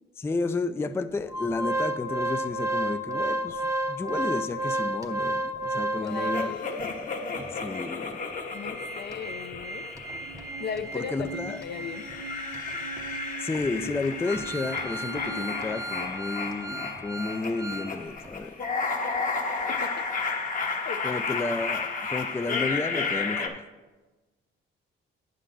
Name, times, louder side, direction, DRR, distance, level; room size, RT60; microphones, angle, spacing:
voice 1, 0.2-6.6 7.5-8.2 10.9-11.6 13.4-18.6 21.0-23.6, left 3 dB, 10° left, 10 dB, 0.3 m, -32 dB
Organ, 1.3-6.9 7.4-7.5 7.7-7.9 8.3-17.9 18.2-18.4, right 1 dB, 15° right, 0.7 m, -33 dB
voice 2, 6.0-6.8 8.5-9.9 10.6-12.1 19.7-20.1 20.8-21.2, left 7 dB, 60° left, 10 dB, 0.6 m, -37 dB
sound 1, 6.3-11.0 11.6-23.5, left 4 dB, 40° left, 1.0 m, -33 dB
sound 2, 10.2-16.1, right 3 dB, 80° right, 0.7 m, -43 dB
8.5 x 3.8 x 6.7 m, 1.2 s
cardioid pair, 90°, 20 cm